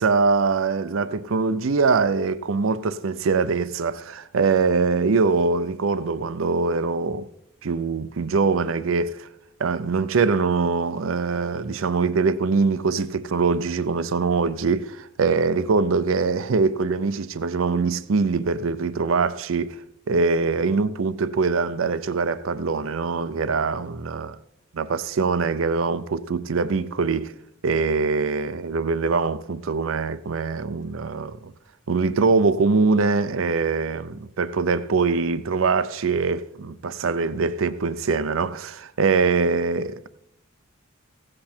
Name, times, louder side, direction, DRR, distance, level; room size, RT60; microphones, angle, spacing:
voice 1, 0.0-7.3 7.6-9.3 9.6-19.8 20.1-24.4 24.7-27.3 27.6-31.5 31.9-40.1, right 4 dB, 80° right, 0.5 m, -23 dB
15.5 x 7.6 x 4.4 m
head